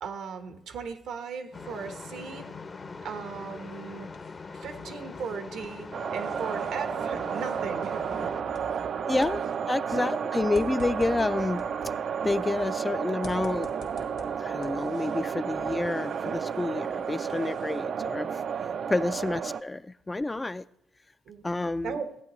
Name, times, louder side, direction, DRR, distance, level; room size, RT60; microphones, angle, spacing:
voice 1, 0.0-2.5 3.0-4.1 4.5-8.0 8.4-8.6 17.0-17.1 18.5-18.7 21.3-21.4 21.8-22.1, right 6 dB, 75° right, 7 dB, 1.0 m, -37 dB
sound 1, 1.5-8.4, left 4 dB, 35° left, 0.7 m, -42 dB
sound 2, 3.7-4.8 5.1-9.0 9.2-12.8 13.2-15.3 15.7-17.8, left 4 dB, 75° left, 1.6 m, -50 dB
sound 3, 5.9-19.6, right 7 dB, 55° right, 0.4 m, -32 dB
voice 2, 9.1-11.6 12.2-13.7 14.4-18.4 18.9-20.6 21.4-22.0, left 2 dB, 20° left, 14 dB, 0.3 m, -29 dB
14.5 x 8.7 x 3.1 m, 0.76 s
cardioid pair, 90°, 0 cm